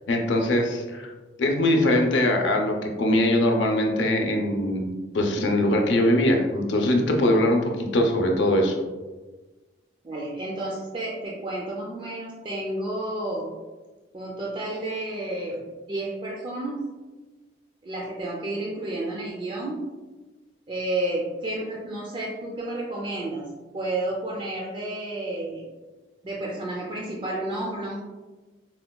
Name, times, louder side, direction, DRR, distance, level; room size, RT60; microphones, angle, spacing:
voice 1, 0.1-1.1 1.4-8.8, left 1 dB, 70° left, 2 dB, 0.5 m, -22 dB
voice 2, 10.0-13.5 14.1-16.9 17.8-19.8 20.7-23.5 23.7-25.6 26.2-28.0, right 1 dB, 25° right, -4 dB, 0.3 m, -31 dB
4.3 x 2.2 x 2.2 m, 1.2 s
head